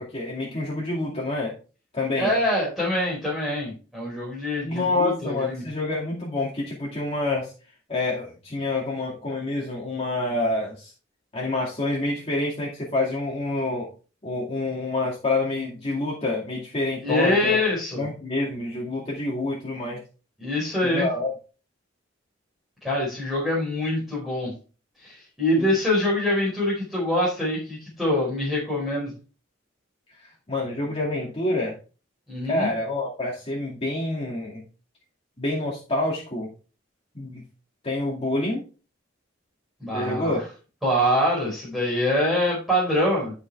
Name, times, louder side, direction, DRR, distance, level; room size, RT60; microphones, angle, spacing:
voice 1, 0.0-1.5 1.9-2.3 4.6-7.5 7.9-10.9 11.3-13.9 14.2-17.6 18.0-20.0 20.8-21.3 25.6-25.7 30.2-31.7 32.5-34.6 35.4-36.5 37.1-37.4 37.8-38.6 39.9-40.4, left 2 dB, 30° left, -4 dB, 2.4 m, -27 dB
voice 2, 2.2-5.6 17.0-18.1 20.4-21.1 22.8-24.5 25.0-29.1 32.3-32.7 39.8-40.4 40.8-43.3, left 1 dB, ahead, -7 dB, 4.5 m, -24 dB
12.5 x 5.6 x 3.5 m, 0.35 s
head